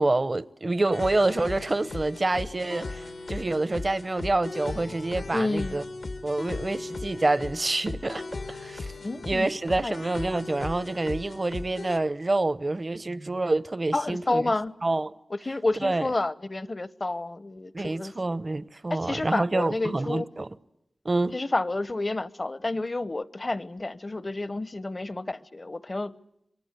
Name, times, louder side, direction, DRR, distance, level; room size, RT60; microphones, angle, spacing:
voice 1, 0.0-5.8 6.2-8.9 9.2-14.4 14.8-15.1 15.8-16.0 17.7-20.5 21.0-21.3, right 2 dB, 45° right, 0.9 m, -27 dB
sound 1, 0.9-12.0, left 3 dB, 75° left, 1.4 m, -37 dB
voice 2, 5.3-5.8 9.0-9.5 9.8-10.0 13.9-14.7 15.3-18.1 18.9-20.3 21.3-26.2, left 2 dB, 45° left, 0.9 m, -30 dB
27.5 x 23.0 x 8.3 m
cardioid pair, 45°, 0 cm